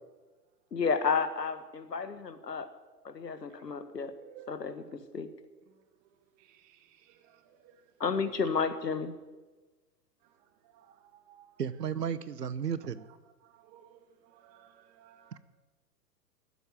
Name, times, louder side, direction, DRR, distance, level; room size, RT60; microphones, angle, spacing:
voice 1, 0.7-2.7 3.0-4.1 4.5-4.8 5.1-5.3 8.0-9.1, left 5 dB, 75° left, 10 dB, 1.6 m, -31 dB
voice 2, 3.9-4.6 6.4-7.8 10.7-11.5 13.4-15.4, right 10 dB, 15° right, 10 dB, 0.7 m, -57 dB
voice 3, 11.6-13.0, right 7 dB, 75° right, 16 dB, 0.9 m, -33 dB
12.5 x 8.1 x 9.7 m, 1.2 s
figure-of-eight pair, 110°, 49 cm